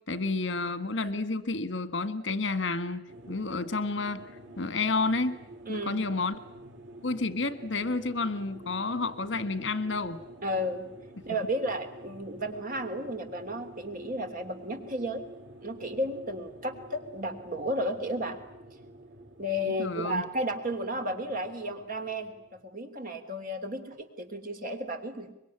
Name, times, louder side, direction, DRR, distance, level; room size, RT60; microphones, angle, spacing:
voice 1, 0.1-4.3 4.6-5.4 5.7-6.4 7.0-10.2 19.7-20.2, left 3 dB, 70° left, 12 dB, 1.6 m, -30 dB
sound 1, 3.1-22.6, right 1 dB, 80° right, 3.7 m, -49 dB
voice 2, 5.7-6.0 10.4-10.9 11.2-15.3 15.6-18.4 19.4-25.3, equal, 50° right, 7 dB, 3.2 m, -33 dB
24.5 x 22.5 x 9.9 m, 0.82 s
head